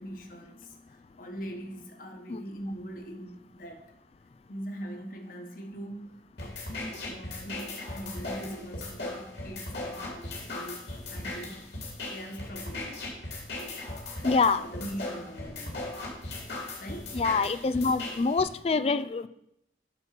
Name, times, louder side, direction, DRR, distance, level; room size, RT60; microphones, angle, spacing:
voice 1, 0.0-4.0 4.5-11.6 12.0-13.0 13.3-13.4 14.3-15.8 16.8-17.2, right 1 dB, 50° left, 3 dB, 1.3 m, -42 dB
sound 1, 6.4-18.4, left 2 dB, 75° left, 2.9 m, -38 dB
voice 2, 14.2-14.6 17.1-19.3, left 4 dB, 35° left, 13 dB, 0.3 m, -25 dB
9.4 x 4.4 x 5.9 m, 0.79 s
head